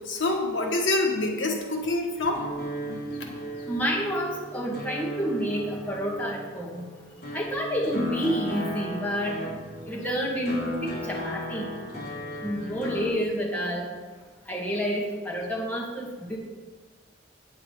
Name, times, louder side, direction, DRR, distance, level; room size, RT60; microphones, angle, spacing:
voice 1, 0.0-2.5, left 2 dB, 70° left, 1 dB, 1.4 m, -26 dB
sound 1, 2.3-13.1, equal, 55° left, 3.6 m, -35 dB
voice 2, 3.7-6.8 7.3-9.4 9.9-11.7 12.4-13.9 14.5-16.4, equal, 10° left, -4 dB, 1.7 m, -29 dB
8.9 x 8.7 x 4.7 m, 1.3 s
head